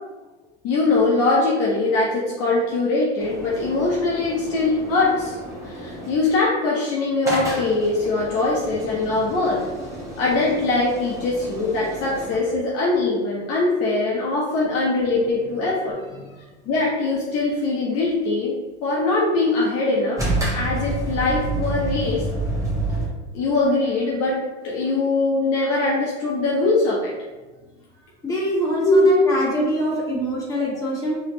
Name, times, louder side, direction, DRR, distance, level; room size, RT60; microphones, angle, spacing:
voice 1, 0.6-5.4 5.6-9.6 10.2-16.0 16.7-20.2 20.5-22.2 23.3-24.4 24.6-27.1 28.8-29.0, left 3 dB, 45° left, -4 dB, 0.8 m, -22 dB
sound 1, 3.2-6.3 7.2-12.5 20.2-23.1, right 1 dB, 10° right, 1.0 m, -29 dB
voice 2, 28.2-31.2, equal, 10° left, -6 dB, 1.4 m, -24 dB
4.1 x 3.1 x 2.7 m, 1.2 s
supercardioid pair, 110°, 34 cm